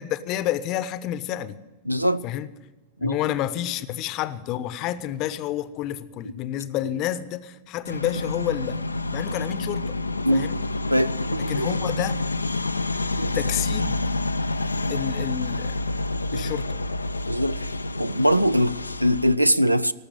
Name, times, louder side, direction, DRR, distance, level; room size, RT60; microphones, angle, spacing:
voice 1, 0.0-1.6 2.2-2.5 3.0-8.8 9.1-10.0 10.3-10.6 11.5-12.2 13.3-14.0 14.9-15.8 16.3-16.8, left 12 dB, 40° left, 0.8 m, -29 dB
voice 2, 1.9-2.3 3.0-3.2 10.2-10.4 10.9-11.9 13.2-13.4 14.7-15.0 16.3-16.5 17.3-19.9, equal, 90° right, 0.4 m, -23 dB
sound 1, 7.9-19.4, left 2 dB, 80° left, 0.4 m, -28 dB
19.0 x 6.8 x 9.3 m
figure-of-eight pair, 90°, 0 cm